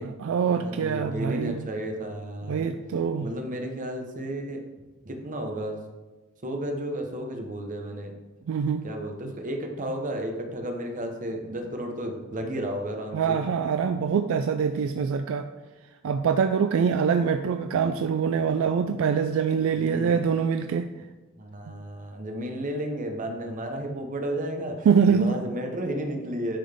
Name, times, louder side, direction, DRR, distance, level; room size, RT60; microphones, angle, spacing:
voice 1, 0.0-1.6 2.5-3.3 8.5-8.8 13.1-15.5 16.0-20.9 21.7-21.8 24.9-25.4, right 6 dB, 70° right, 8 dB, 0.3 m, -24 dB
voice 2, 0.5-2.7 3.2-4.6 5.0-5.8 6.4-8.1 8.8-13.4 19.7-20.1 21.4-26.6, right 1 dB, 40° right, 3 dB, 0.9 m, -33 dB
10.0 x 3.8 x 3.5 m, 1.2 s
head